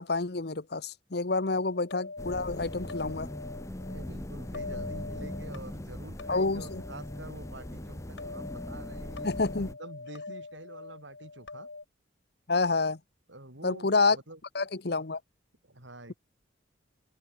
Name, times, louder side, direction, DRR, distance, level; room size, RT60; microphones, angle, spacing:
voice 1, 0.0-3.3 6.3-6.8 9.2-9.7 12.5-13.0 13.6-14.2 14.5-15.2, left 3 dB, 55° left, 1.0 m, -28 dB
sound 1, 1.3-11.8, left 3 dB, 75° left, 1.9 m, -44 dB
sound 2, 2.2-9.7, left 1 dB, 15° left, 0.8 m, -40 dB
voice 2, 3.8-9.3 9.7-11.7 13.3-14.4 15.6-16.1, right 2 dB, 80° right, 6.7 m, -47 dB
open air
head